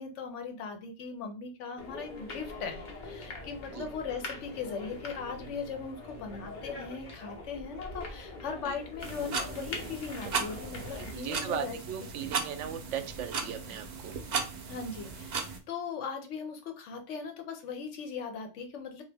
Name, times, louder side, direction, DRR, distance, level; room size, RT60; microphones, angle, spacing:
voice 1, 0.0-11.8 14.7-19.0, left 5 dB, 80° left, 5 dB, 1.0 m, -39 dB
sound 1, 1.8-11.1, left 2 dB, 45° left, 0.8 m, -43 dB
sound 2, 9.0-15.6, right 5 dB, 50° right, 0.6 m, -36 dB
voice 2, 11.0-14.1, right 9 dB, 85° right, 9 dB, 0.9 m, -38 dB
2.9 x 2.5 x 3.4 m, 0.32 s
omnidirectional pair, 1.2 m